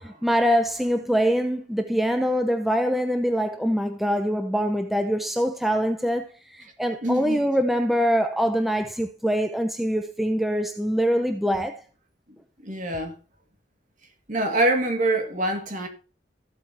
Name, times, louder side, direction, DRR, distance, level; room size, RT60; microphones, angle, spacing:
voice 1, 0.0-11.8, equal, ahead, 0.6 m, -24 dB
voice 2, 7.0-7.4 12.6-13.2 14.3-15.9, right 1 dB, 45° right, 2.3 m, -25 dB
14.5 x 7.8 x 2.9 m
head